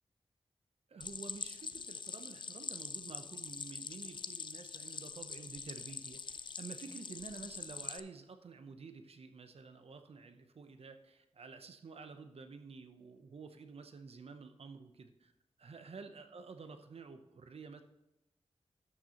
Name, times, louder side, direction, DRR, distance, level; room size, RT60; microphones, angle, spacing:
voice 1, 0.9-15.3 15.6-17.8, right 4 dB, 65° right, 8 dB, 0.7 m, -50 dB
Stream, 1.0-8.0, left 5 dB, 45° left, 0.4 m, -44 dB
12.0 x 6.3 x 3.0 m, 0.89 s
wide cardioid pair, 75°, 11 cm